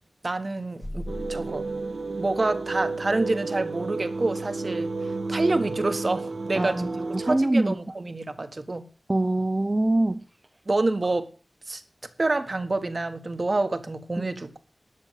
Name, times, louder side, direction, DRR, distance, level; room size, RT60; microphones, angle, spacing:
voice 1, 0.2-1.6 2.2-4.9 5.3-6.9 7.2-8.9 10.7-11.3 11.7-11.8 12.2-14.6, right 2 dB, 45° right, 1.4 m, -27 dB
sound 1, 0.8-3.2, left 1 dB, 15° left, 1.2 m, -40 dB
sound 2, 1.1-7.4, right 3 dB, 80° right, 1.6 m, -31 dB
voice 2, 6.6-7.8 9.1-10.2 14.2-14.3, right 2 dB, 25° right, 0.6 m, -24 dB
12.0 x 6.7 x 7.4 m
wide cardioid pair, 75°, 0 cm